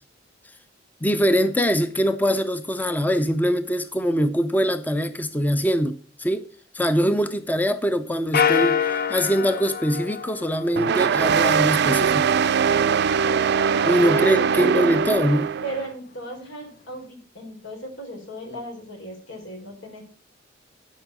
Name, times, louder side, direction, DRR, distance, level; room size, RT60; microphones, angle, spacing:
voice 1, 1.0-6.5 6.7-12.3 13.9-15.5, equal, 10° left, 0.5 m, -23 dB
sound 1, 8.3-11.0, left 8 dB, 55° left, 0.7 m, -25 dB
sound 2, 10.8-15.9, right 6 dB, 60° right, 0.4 m, -21 dB
voice 2, 13.6-14.9 15.6-20.0, equal, 85° left, 4.1 m, -36 dB
11.5 x 5.3 x 6.0 m
head